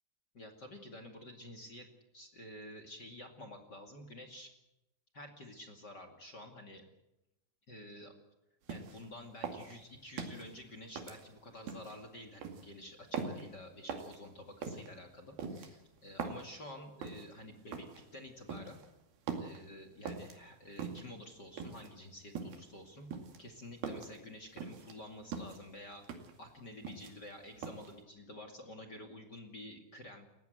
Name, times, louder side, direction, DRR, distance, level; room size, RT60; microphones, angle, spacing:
voice 1, 0.3-1.9 2.1-4.5 5.1-6.8 7.7-8.1 8.7-18.8 19.3-23.1 23.4-30.3, left 1 dB, 30° left, 6 dB, 2.5 m, -50 dB
sound 1, 8.7-9.1 9.4-10.5 11.0-12.0 12.4-12.7 13.1-13.5 13.9-14.2 14.6-14.9 15.4-16.5 17.0-17.3 17.7-18.0 18.5-18.9 19.3-19.6 20.1-20.4 20.8-21.1 21.6-21.9 22.4-22.7 23.1-24.2 24.6-25.0 25.3-25.6 26.0-26.4 26.7-27.3 27.6-27.9, right 5 dB, 90° right, 4.2 m, -42 dB
29.5 x 15.5 x 8.1 m, 0.90 s
omnidirectional pair, 4.1 m